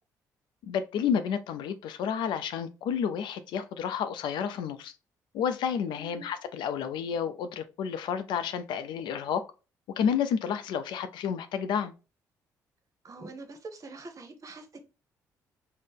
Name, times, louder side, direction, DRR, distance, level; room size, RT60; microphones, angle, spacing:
voice 1, 0.7-4.9 5.3-9.4 10.0-11.9, left 7 dB, 70° left, 0.4 m, -30 dB
voice 2, 5.9-6.3 13.0-14.8, right 3 dB, 40° right, 0.8 m, -44 dB
3.9 x 2.0 x 3.5 m
hypercardioid pair, 55°, 8 cm